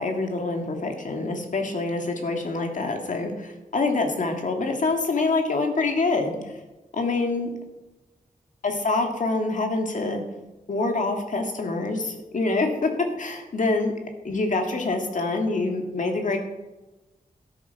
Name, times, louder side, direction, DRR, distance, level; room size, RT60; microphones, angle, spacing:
voice 1, 0.0-6.6 6.9-7.5 8.6-10.2 10.7-12.9 13.2-13.9 14.2-16.4, left 3 dB, 60° left, 4 dB, 2.0 m, -26 dB
12.5 x 8.1 x 5.8 m, 1.1 s
wide cardioid pair, 95°, 15 cm